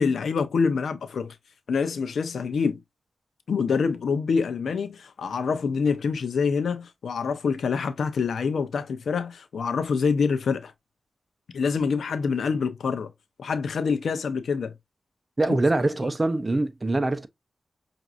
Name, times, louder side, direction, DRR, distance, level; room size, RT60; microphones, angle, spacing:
voice 1, 0.0-1.3 1.7-2.8 3.5-10.7 11.5-13.1 13.4-14.7 15.5-15.6 16.0-16.1, left 5 dB, 90° left, 0.6 m, -26 dB
voice 2, 15.4-17.3, right 2 dB, 30° right, 0.6 m, -24 dB
5.9 x 2.6 x 2.5 m
cardioid pair, 70°, 0 cm